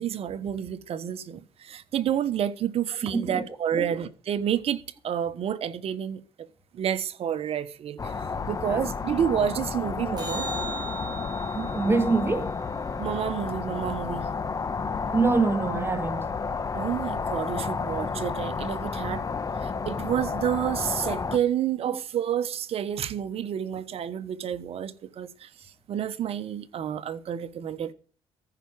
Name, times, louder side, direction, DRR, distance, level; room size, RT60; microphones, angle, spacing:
voice 1, 0.0-6.2 6.7-8.1 8.5-10.5 13.0-14.3 16.7-19.2 19.6-25.5 25.9-27.9, right 9 dB, 60° right, 1.3 m, -29 dB
voice 2, 3.1-3.4 3.7-3.9 8.7-8.8 11.5-12.5 15.1-16.3 21.8-22.0, right 4 dB, 20° right, 2.1 m, -25 dB
sound 1, 8.0-21.4, left 5 dB, 30° left, 1.3 m, -31 dB
sound 2, 10.2-14.6 21.2-21.3, right 4 dB, 40° right, 5.3 m, -41 dB
14.5 x 6.0 x 8.8 m
cardioid pair, 80°, 11 cm